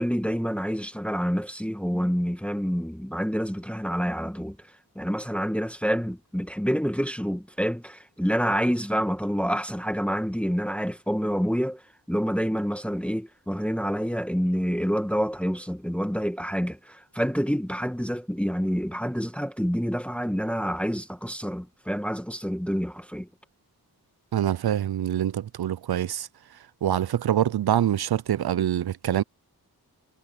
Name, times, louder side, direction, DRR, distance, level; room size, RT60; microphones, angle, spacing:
voice 1, 0.0-11.8 12.1-23.3, equal, 5° left, 1.4 m, -27 dB
voice 2, 24.3-26.3 26.8-29.2, right 11 dB, 75° right, 0.5 m, -25 dB
wide cardioid pair, 85°, 38 cm